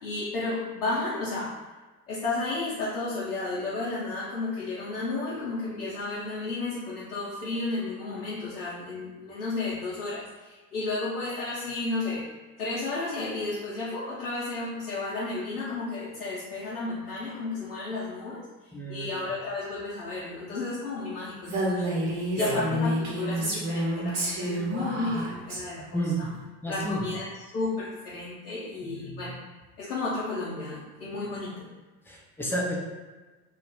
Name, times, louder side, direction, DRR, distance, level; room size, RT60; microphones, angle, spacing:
voice 1, 0.0-1.5 2.1-12.2 12.6-26.3 26.7-27.3 27.5-29.3 29.8-31.7, left 3 dB, 85° left, -9 dB, 0.7 m, -33 dB
voice 2, 18.7-19.1 22.4-22.6 24.7-24.9 25.9-26.3 26.6-27.0 28.8-29.3 32.1-32.8, right 1 dB, 5° left, -3 dB, 0.4 m, -31 dB
Female speech woman speaking, 21.4-25.6, equal, 65° right, 1.0 m, -29 dB
2.3 x 2.0 x 3.3 m, 1.2 s
figure-of-eight pair, 65°, 44 cm